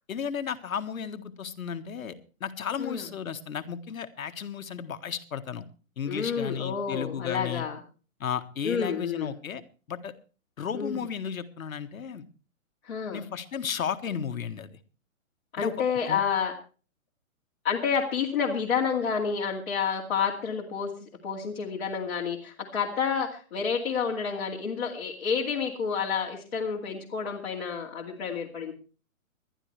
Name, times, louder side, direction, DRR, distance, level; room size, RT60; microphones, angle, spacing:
voice 1, 0.1-5.6 6.0-7.7 8.2-9.6 9.9-10.1 10.6-12.2 13.1-14.8 15.6-15.7 16.0-16.2, left 7 dB, 75° left, 9 dB, 1.6 m, -34 dB
voice 2, 6.0-7.8 8.6-9.3 10.7-11.0 12.8-13.2 15.5-16.5 17.6-28.7, left 6 dB, 45° left, -3 dB, 2.5 m, -29 dB
21.0 x 12.0 x 3.3 m, 0.37 s
hypercardioid pair, 175°, 41 cm